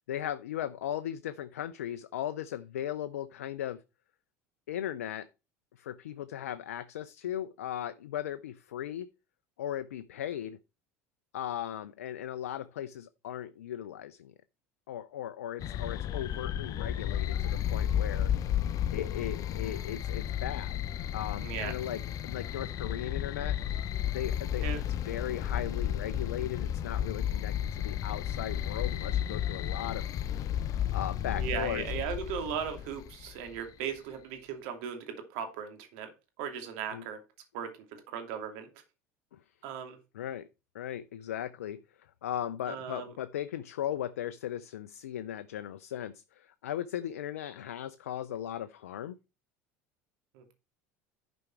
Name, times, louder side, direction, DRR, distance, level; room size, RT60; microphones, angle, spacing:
voice 1, 0.1-3.8 4.7-5.3 5.8-9.1 9.6-10.6 11.3-14.3 14.9-18.3 18.9-20.8 21.1-23.6 24.0-30.1 30.7-31.9 36.9-37.0 39.3-39.4 40.1-40.4 40.7-49.2, left 11 dB, 85° left, 0.5 m, -37 dB
sound 1, 15.6-33.6, left 10 dB, 45° left, 0.7 m, -33 dB
voice 2, 21.4-21.7 24.6-24.8 31.3-36.1 36.4-37.2 37.5-37.7 38.1-38.7 39.6-40.0 42.7-43.1 50.3-50.5, right 8 dB, 70° right, 2.7 m, -37 dB
11.0 x 5.2 x 4.5 m
hypercardioid pair, 85°, 8 cm